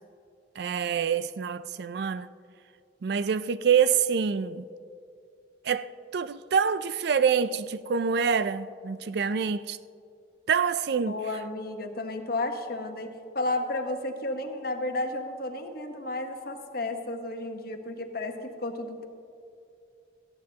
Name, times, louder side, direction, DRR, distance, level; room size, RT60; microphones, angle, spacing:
voice 1, 0.6-2.3 3.0-4.6 5.6-9.8 10.5-11.1, right 6 dB, 60° right, 0.4 m, -26 dB
voice 2, 11.1-19.1, left 2 dB, 55° left, 1.1 m, -32 dB
17.5 x 14.5 x 2.9 m
head